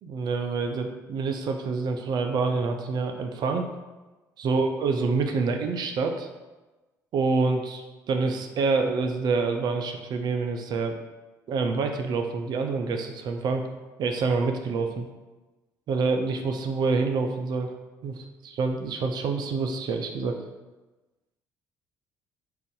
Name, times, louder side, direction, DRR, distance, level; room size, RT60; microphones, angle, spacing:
voice 1, 0.0-3.7 4.4-6.3 7.1-11.0 11.5-13.7 14.0-15.1 15.9-17.7 18.0-20.4, right 4 dB, 50° right, 5 dB, 0.4 m, -27 dB
2.5 x 2.4 x 3.8 m, 1.1 s
figure-of-eight pair, 55°, 9 cm